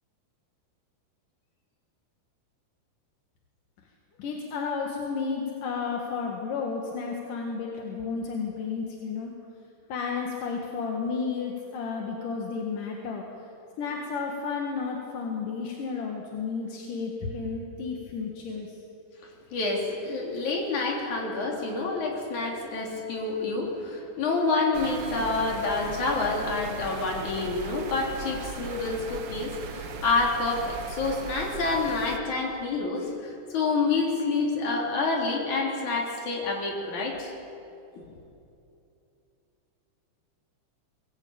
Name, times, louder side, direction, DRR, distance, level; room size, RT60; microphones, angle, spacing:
voice 1, 4.2-9.3 9.9-13.2 13.8-18.7, left 5 dB, 80° left, 0 dB, 3.4 m, -32 dB
voice 2, 19.5-37.3, left 3 dB, 65° left, -1 dB, 4.7 m, -28 dB
sound 1, 24.7-32.2, right 4 dB, 55° right, 1.3 m, -38 dB
23.0 x 19.0 x 8.8 m, 2.8 s
omnidirectional pair, 3.7 m